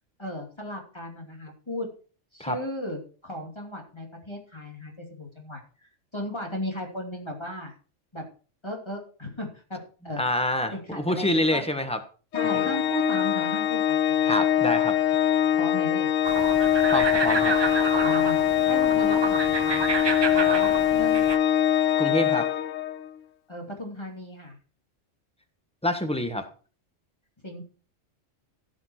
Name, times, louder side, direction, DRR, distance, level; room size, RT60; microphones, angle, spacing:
voice 1, 0.2-1.9 2.3-7.7 8.1-8.2 8.6-9.8 10.0-10.2 10.7-11.6 12.3-14.4 15.5-16.1 18.0-20.1 20.3-21.2 23.5-24.6 27.4-27.6, left 1 dB, 20° left, 0 dB, 2.8 m, -36 dB
voice 2, 10.2-12.0 12.5-12.7 14.3-14.9 16.9-17.5 22.0-22.5 25.8-26.5, left 1 dB, 5° left, 7 dB, 1.2 m, -26 dB
Organ, 12.3-23.1, left 10 dB, 80° left, 1.0 m, -23 dB
sound 1, 16.2-21.4, right 4 dB, 30° right, 0.5 m, -29 dB
16.5 x 6.4 x 4.4 m, 0.39 s
omnidirectional pair, 1.3 m